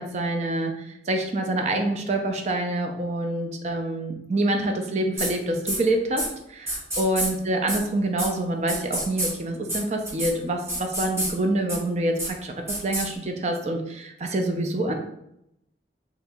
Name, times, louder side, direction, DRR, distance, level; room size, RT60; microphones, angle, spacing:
voice 1, 0.0-14.9, right 1 dB, 40° right, 4 dB, 0.4 m, -26 dB
sound 1, 5.2-5.3 5.7-5.8 6.2-6.3 6.7-7.3 7.7-7.8 8.2-8.3 8.7-9.3 9.7-9.8 10.1-10.3 10.7-11.3 11.7-11.8 12.2-12.3 12.7-13.1, right 1 dB, 15° right, 0.8 m, -27 dB
2.9 x 2.7 x 3.5 m, 0.82 s
head